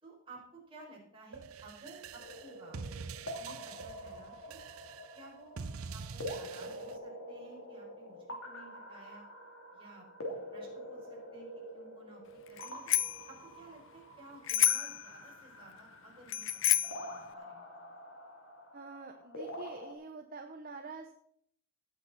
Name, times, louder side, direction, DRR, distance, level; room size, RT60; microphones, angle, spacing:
voice 1, 0.0-2.9 3.4-4.6 5.1-5.6 5.9-9.3 9.7-12.9 13.3-17.9, right 2 dB, 25° right, -3 dB, 4.7 m, -55 dB
sound 1, 1.3-7.0, right 5 dB, 85° right, 0.7 m, -45 dB
sound 2, 2.2-19.9, equal, 85° left, 3.1 m, -46 dB
Bicycle bell, 12.6-13.3 14.5-15.0 16.3-17.1, left 13 dB, 65° left, 0.5 m, -29 dB
voice 2, 18.7-21.1, right 3 dB, 40° right, 4 dB, 1.0 m, -46 dB
17.0 x 8.1 x 4.2 m, 0.66 s
head